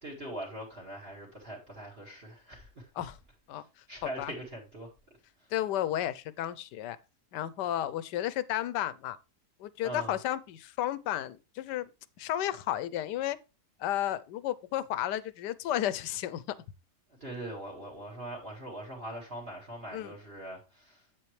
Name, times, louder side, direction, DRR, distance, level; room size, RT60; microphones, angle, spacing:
voice 1, 0.0-2.9 3.5-4.9 5.4-5.5 9.8-10.2 17.1-21.1, right 1 dB, 35° right, 2.1 m, -42 dB
voice 2, 5.5-7.0 7.3-9.2 9.6-11.9 12.2-13.4 13.8-16.4 19.9-20.1, left 12 dB, 85° left, 1.3 m, -32 dB
8.1 x 7.7 x 3.2 m
omnidirectional pair, 1.8 m